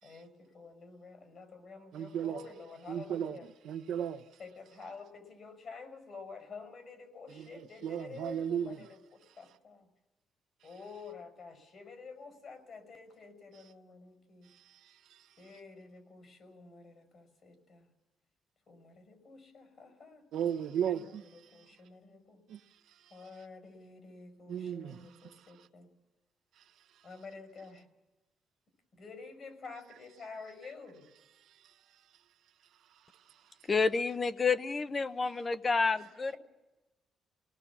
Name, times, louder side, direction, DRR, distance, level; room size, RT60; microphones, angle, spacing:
voice 1, 0.0-3.5 4.4-9.9 10.6-14.5 15.4-17.9 18.7-20.2 20.8-22.4 23.1-25.9 27.0-27.9 28.9-31.1, left 4 dB, 55° left, 5.6 m, -50 dB
voice 2, 1.9-2.5 2.9-4.2 7.3-8.9 14.5-15.5 20.3-21.7 22.5-23.3 24.5-25.7 26.6-26.7 31.4-31.8 32.9-33.7, right 9 dB, 75° right, 1.0 m, -38 dB
voice 3, 33.7-36.3, left 4 dB, 30° left, 0.8 m, -29 dB
27.0 x 18.5 x 7.3 m
cardioid pair, 90°, 0 cm